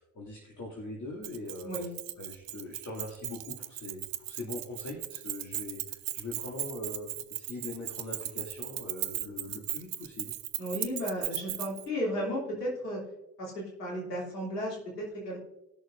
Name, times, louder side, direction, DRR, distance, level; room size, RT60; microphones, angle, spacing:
voice 1, 0.0-1.7 2.2-10.3, left 2 dB, 40° left, -3 dB, 2.4 m, -42 dB
Keys jangling, 1.2-11.9, right 17 dB, 70° right, 0.7 m, -37 dB
voice 2, 10.6-13.0 13.4-15.4, equal, 90° left, -3 dB, 3.0 m, -34 dB
19.0 x 6.5 x 2.6 m, 0.96 s
hypercardioid pair, 60°, 46 cm